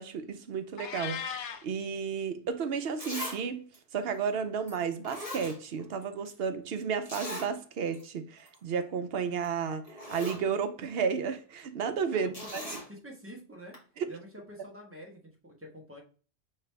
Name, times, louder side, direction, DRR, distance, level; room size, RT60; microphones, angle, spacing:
voice 1, 0.0-3.7 3.9-12.8 14.0-14.1, right 6 dB, 65° right, 0.8 m, -33 dB
Meow, 0.8-1.6, left 7 dB, 90° left, 0.9 m, -37 dB
Zipper (clothing), 2.4-2.5 3.0-3.4 3.7-3.8 4.7-4.8 5.0-6.0 6.3-6.4 7.1-7.5 7.9-8.0 8.4-8.6 9.4-9.5 9.8-10.4 12.3-12.9 13.7-13.8, left 1 dB, 35° left, 1.5 m, -39 dB
voice 2, 12.1-13.8 14.1-16.0, equal, 15° right, 1.0 m, -48 dB
4.8 x 3.2 x 3.3 m
omnidirectional pair, 1.1 m